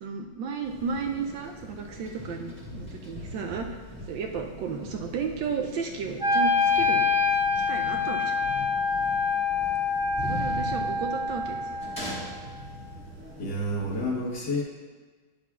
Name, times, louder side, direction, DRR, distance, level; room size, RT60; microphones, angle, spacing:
voice 1, 0.0-3.8 4.1-7.1 7.6-8.4 10.2-11.8, right 5 dB, 75° right, 2 dB, 1.2 m, -33 dB
sound 1, 0.6-14.1, left 1 dB, 5° left, 1.6 m, -41 dB
Wind instrument woodwind instrument, 6.2-12.3, left 4 dB, 30° right, 1.3 m, -26 dB
voice 2, 13.4-14.6, left 1 dB, 55° left, -3 dB, 1.8 m, -29 dB
10.0 x 7.1 x 2.4 m, 1.4 s
omnidirectional pair, 2.2 m